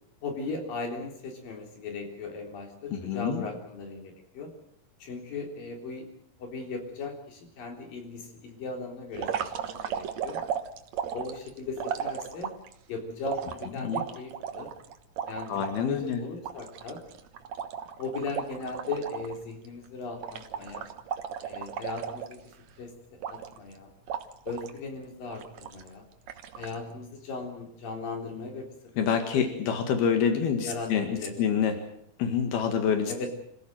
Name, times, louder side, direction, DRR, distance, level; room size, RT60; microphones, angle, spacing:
voice 1, 0.2-4.5 5.0-6.1 6.4-9.5 9.8-10.4 11.1-12.5 12.9-14.7 15.3-17.0 18.0-20.9 21.4-22.4 22.8-22.9 23.3-23.9 24.5-26.1 26.6-28.7 29.0-29.8 30.6-31.6 33.1-33.3, left 3 dB, 65° left, 3 dB, 5.3 m, -37 dB
voice 2, 2.9-3.4 13.8-14.0 15.5-16.2 29.0-31.8 32.2-33.3, left 7 dB, 80° left, 6 dB, 3.9 m, -27 dB
sound 1, 9.1-12.7 13.3-15.8 16.1-16.2 16.4-19.4 19.6-19.9 20.2-22.7 23.2-23.7 24.1-24.8 25.3-25.9 26.3-26.8, right 8 dB, 60° right, 2.1 m, -35 dB
26.5 x 16.0 x 7.8 m, 0.71 s
omnidirectional pair, 4.4 m